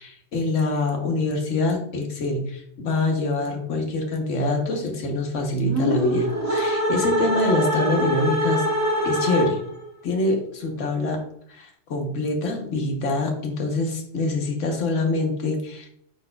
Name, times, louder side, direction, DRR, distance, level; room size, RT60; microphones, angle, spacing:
voice 1, 0.0-8.6 9.0-9.6 10.0-11.2 11.5-15.9, left 2 dB, 80° left, 2 dB, 1.2 m, -25 dB
sound 1, 5.6-9.8, equal, 15° right, 0.9 m, -24 dB
5.1 x 4.3 x 2.2 m, 0.69 s
omnidirectional pair, 1.3 m